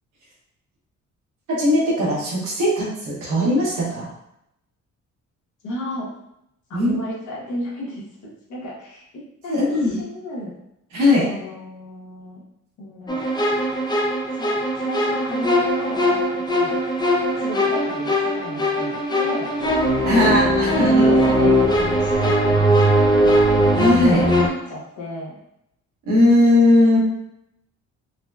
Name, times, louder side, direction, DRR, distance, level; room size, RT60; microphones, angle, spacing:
voice 1, 1.5-4.1 6.7-6.9 9.5-9.9 10.9-11.3 20.1-21.5 23.8-24.2 26.1-27.0, left 1 dB, 90° right, -6 dB, 1.1 m, -18 dB
voice 2, 5.6-6.1 6.7-8.0 8.5-10.5 11.3-12.4 12.8-13.2 14.3-16.8 17.4-19.5 20.1-23.4 24.1-25.4, left 1 dB, 75° left, -4 dB, 1.0 m, -33 dB
sound 1, 13.1-24.5, equal, 15° left, 0.4 m, -20 dB
3.9 x 2.1 x 2.2 m, 0.80 s
cardioid pair, 90°, 30 cm